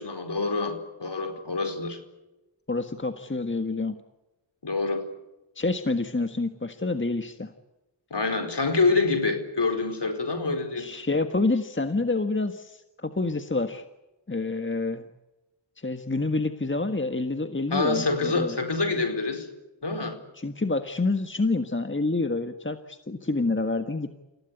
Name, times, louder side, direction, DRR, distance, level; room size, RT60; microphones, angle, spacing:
voice 1, 0.0-2.0 4.6-5.0 8.1-10.9 17.7-19.5 19.8-20.2, left 3 dB, 60° left, 8 dB, 4.7 m, -26 dB
voice 2, 2.7-4.0 5.5-7.5 10.7-13.8 14.3-15.0 15.8-18.6 20.3-24.2, left 3 dB, 25° left, 8 dB, 1.6 m, -28 dB
28.5 x 17.0 x 9.8 m, 1.0 s
cardioid pair, 45°, 47 cm